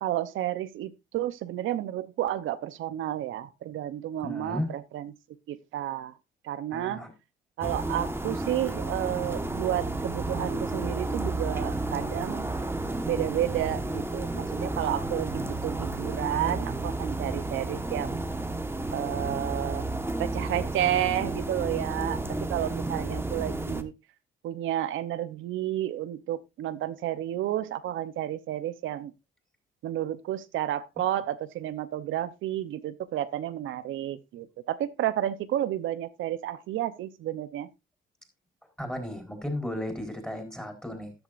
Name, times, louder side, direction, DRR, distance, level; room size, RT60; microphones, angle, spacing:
voice 1, 0.0-5.1 5.5-6.1 6.4-7.0 7.6-12.5 13.0-18.2 18.9-19.9 20.2-22.2 22.5-23.9 24.4-29.1 29.8-37.7, right 12 dB, 80° right, 0.8 m, -31 dB
voice 2, 4.2-4.7 6.7-7.1 22.9-23.0 38.8-41.1, left 1 dB, 5° left, 4.2 m, -34 dB
sound 1, 7.6-23.8, right 2 dB, 10° right, 1.3 m, -32 dB
13.5 x 10.5 x 2.5 m
cardioid pair, 90°, 20 cm